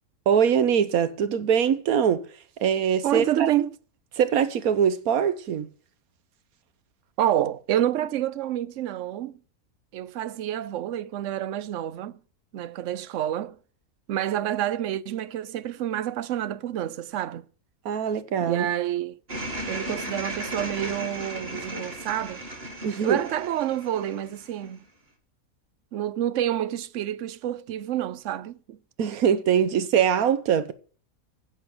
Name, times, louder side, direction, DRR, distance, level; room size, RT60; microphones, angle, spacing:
voice 1, 0.3-2.3 2.6-3.5 4.2-5.7 17.8-18.7 22.8-23.2 29.0-30.7, right 8 dB, 85° right, 1.3 m, -22 dB
voice 2, 3.0-3.7 7.2-9.3 9.9-12.2 12.5-13.6 14.1-17.4 18.4-19.2 19.7-22.4 23.0-24.8 25.9-28.8 29.7-29.8, right 11 dB, 65° right, 1.0 m, -28 dB
sound 1, 19.3-24.7, right 1 dB, 45° right, 2.7 m, -35 dB
10.0 x 6.4 x 7.9 m
omnidirectional pair, 1.5 m